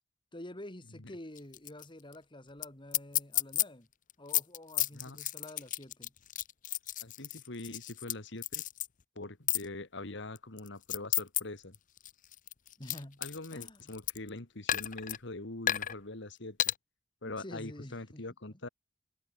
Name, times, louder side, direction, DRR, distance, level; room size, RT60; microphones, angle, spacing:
voice 1, 0.3-3.9 4.2-6.1 12.8-13.2 13.5-13.8 17.2-18.2 18.5-18.6, left 1 dB, 25° left, 2.9 m, -48 dB
sound 1, 1.4-1.9 2.1-2.2 2.6-2.7 2.9-3.6 4.1-8.1 8.4-8.9 9.5-9.7 10.4-11.4 11.7-14.3 14.7-15.2 15.7-15.9 16.6-16.7, left 13 dB, 45° left, 0.7 m, -32 dB
voice 2, 7.0-8.6 9.2-11.8 13.2-16.7 17.2-18.7, left 2 dB, 65° left, 2.2 m, -43 dB
head